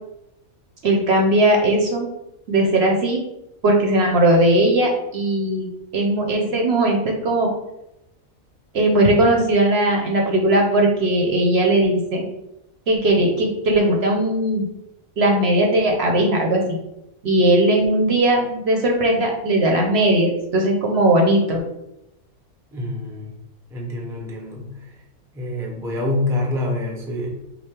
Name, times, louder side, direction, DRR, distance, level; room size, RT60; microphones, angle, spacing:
voice 1, 0.8-2.1 2.5-3.2 3.6-7.5 8.7-12.2 12.9-14.7 15.2-16.8 17.2-21.6, right 1 dB, 55° right, 1 dB, 0.9 m, -18 dB
voice 2, 22.7-23.4 23.7-25.0 25.3-27.3, left 2 dB, 5° right, -1 dB, 0.5 m, -26 dB
5.3 x 2.0 x 4.4 m, 0.88 s
omnidirectional pair, 1.4 m